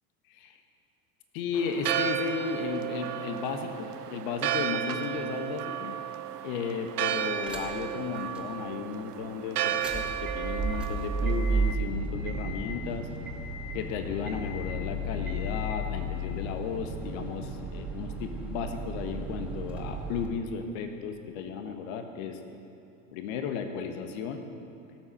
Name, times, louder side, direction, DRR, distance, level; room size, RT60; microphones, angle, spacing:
voice 1, 1.3-6.0 6.4-13.1 13.7-22.4 23.1-24.4, left 6 dB, 60° left, 6 dB, 1.5 m, -34 dB
Church bell, 1.5-11.7, right 11 dB, 80° right, 0.8 m, -33 dB
sound 1, 7.4-7.9 8.3-8.4 9.6-20.3, right 2 dB, ahead, 2.1 m, -33 dB
17.5 x 7.4 x 6.6 m, 2.7 s
hypercardioid pair, 80°, 46 cm